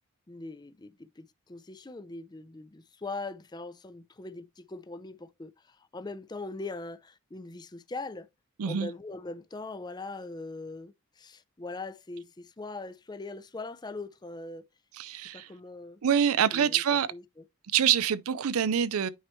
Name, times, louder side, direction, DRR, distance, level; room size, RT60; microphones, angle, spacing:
voice 1, 0.3-8.3 8.6-14.6 15.1-16.0 16.5-16.8 17.1-17.2, left 3 dB, 20° left, 0.4 m, -41 dB
voice 2, 14.9-15.5 16.0-17.1 17.7-19.1, right 8 dB, 85° right, 0.5 m, -25 dB
9.1 x 4.4 x 3.0 m
head